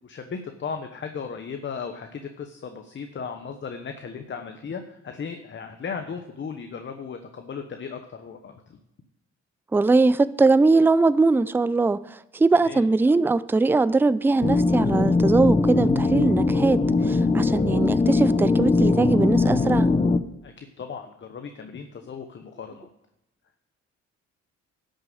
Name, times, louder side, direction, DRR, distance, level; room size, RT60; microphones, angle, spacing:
voice 1, 0.0-8.6 12.5-12.8 20.4-22.9, left 6 dB, 40° left, 1.0 m, -36 dB
voice 2, 9.7-12.0 12.3-19.9, right 3 dB, 5° right, 0.4 m, -21 dB
sound 1, 14.4-20.2, left 3 dB, 20° left, 0.7 m, -21 dB
11.5 x 6.5 x 7.7 m
cardioid pair, 90°, 30 cm